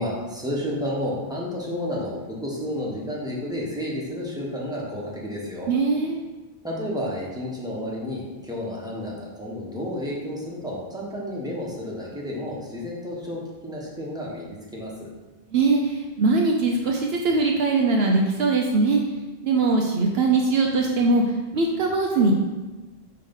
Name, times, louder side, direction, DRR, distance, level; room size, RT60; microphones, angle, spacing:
voice 1, 0.0-5.7 6.6-14.9, left 1 dB, 5° right, -5 dB, 1.3 m, -31 dB
voice 2, 5.7-6.2 15.5-19.0 19.4-21.2 21.5-22.3, right 3 dB, 70° right, 1 dB, 0.9 m, -21 dB
5.6 x 3.4 x 5.3 m, 1.2 s
omnidirectional pair, 1.1 m